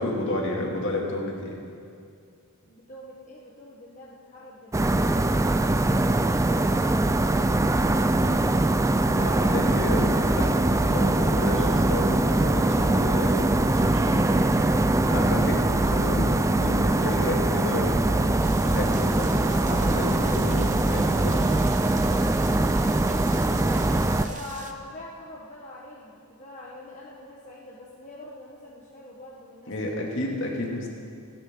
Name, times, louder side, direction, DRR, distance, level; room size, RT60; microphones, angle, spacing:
voice 1, 0.0-1.6 9.1-10.5 10.8-14.2 15.1-15.6 15.8-18.0 18.6-21.5 29.7-30.9, left 1 dB, 55° left, -2 dB, 2.8 m, -31 dB
voice 2, 2.6-7.1 7.6-8.2 15.1-15.5 24.1-30.0, left 1 dB, 35° left, -5 dB, 1.5 m, -45 dB
sound 1, 4.7-24.3, right 2 dB, 15° right, 0.4 m, -22 dB
sound 2, 18.4-24.7, right 6 dB, 35° right, 1.0 m, -45 dB
28.0 x 12.0 x 4.0 m, 2.4 s
head